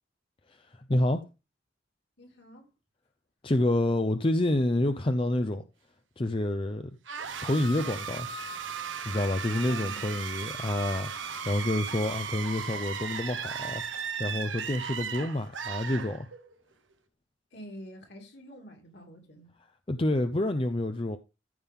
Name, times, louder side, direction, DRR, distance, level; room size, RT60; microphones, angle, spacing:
voice 1, 0.9-1.2 3.4-5.6 6.2-6.9 7.4-8.3 9.0-16.3 19.9-21.2, left 1 dB, 30° left, 0.6 m, -28 dB
voice 2, 2.2-2.7 9.6-10.1 17.5-19.5, equal, 60° left, 2.9 m, -47 dB
sound 1, 7.1-16.6, right 6 dB, 90° right, 1.3 m, -36 dB
14.0 x 5.4 x 3.7 m
head